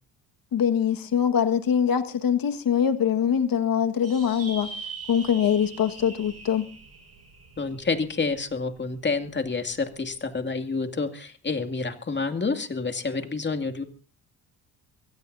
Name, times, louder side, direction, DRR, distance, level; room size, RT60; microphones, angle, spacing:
voice 1, 0.5-4.7 5.1-6.6, left 8 dB, 60° left, 8 dB, 1.8 m, -23 dB
sound 1, 4.0-8.8, right 4 dB, 35° right, 6.9 m, -42 dB
voice 2, 7.6-13.8, left 4 dB, 25° left, 7 dB, 2.5 m, -28 dB
24.0 x 17.5 x 2.8 m, 0.37 s
cardioid pair, 85°, 39 cm